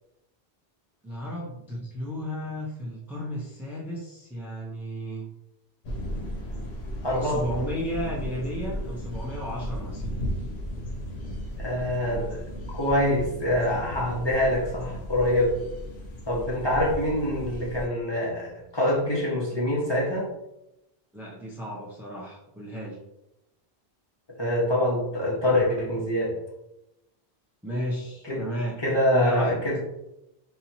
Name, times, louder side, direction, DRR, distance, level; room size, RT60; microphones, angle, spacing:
voice 1, 1.0-5.2 7.2-10.1 21.1-23.0 27.6-28.8 29.1-29.6, equal, 5° right, -4 dB, 0.4 m, -33 dB
sound 1, 5.8-17.9, equal, 80° left, 1.0 m, -35 dB
voice 2, 7.0-7.4 11.6-12.5 12.7-15.5 16.3-20.3 24.4-26.3 28.2-28.4 28.8-29.8, left 1 dB, 25° left, -5 dB, 1.0 m, -25 dB
4.0 x 2.9 x 2.8 m, 0.89 s
omnidirectional pair, 1.1 m